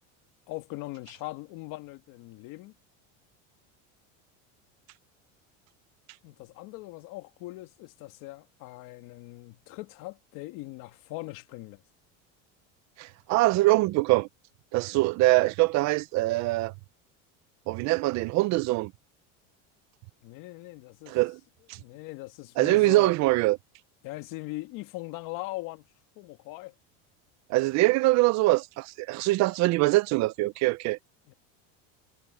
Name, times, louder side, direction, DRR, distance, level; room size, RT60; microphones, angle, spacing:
voice 1, 0.5-2.7 6.2-11.8 20.2-21.2 21.7-23.1 24.0-25.9 26.2-26.7 31.3-31.4, left 20 dB, 60° left, 2.4 m, -40 dB
voice 2, 13.0-14.3 14.7-16.7 17.7-18.9 21.1-21.4 21.7-21.8 22.6-23.6 27.5-31.0, right 20 dB, 50° right, 0.6 m, -23 dB
cardioid pair, 145°, 37 cm